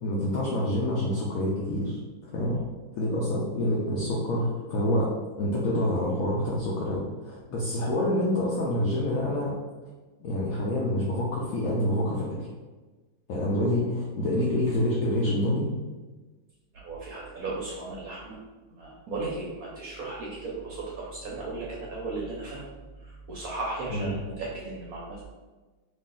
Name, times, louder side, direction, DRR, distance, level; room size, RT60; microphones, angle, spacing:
voice 1, 0.0-2.6 2.9-5.1 5.4-9.5 10.2-12.5 13.3-15.7 23.9-24.1, left 1 dB, 75° left, -4 dB, 0.7 m, -27 dB
voice 2, 16.7-18.4 18.7-25.2, right 3 dB, 70° right, -4 dB, 0.9 m, -36 dB
3.1 x 2.5 x 3.7 m, 1.3 s
omnidirectional pair, 2.1 m